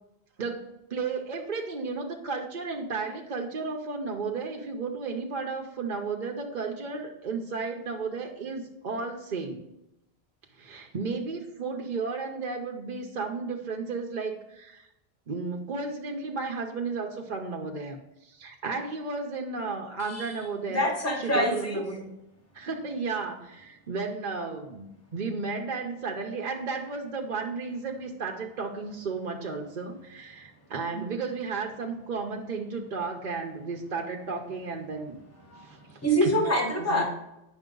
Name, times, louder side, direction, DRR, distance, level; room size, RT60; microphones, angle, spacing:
voice 1, 0.4-9.6 10.6-14.9 15.3-20.9 21.2-22.1 22.5-35.2 35.6-35.8 36.2-36.3 36.9-37.0, right 4 dB, 50° right, 1 dB, 0.8 m, -33 dB
voice 2, 20.7-21.9 30.9-31.0 35.5-37.0, equal, 15° left, 0 dB, 1.1 m, -26 dB
9.1 x 5.8 x 3.8 m, 0.87 s
omnidirectional pair, 1.0 m